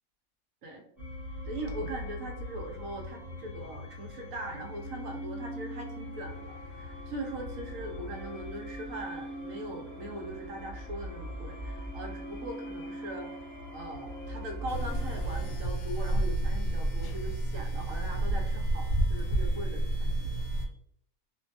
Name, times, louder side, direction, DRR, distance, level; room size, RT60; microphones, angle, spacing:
sound 1, 1.0-15.5, equal, 20° left, 0.4 m, -41 dB
voice 1, 1.4-13.3 13.7-20.4, right 1 dB, 75° right, 2 dB, 1.0 m, -41 dB
sound 2, 14.7-20.7, right 1 dB, 75° left, 0.9 m, -30 dB
2.5 x 2.2 x 2.5 m, 0.68 s
omnidirectional pair, 1.5 m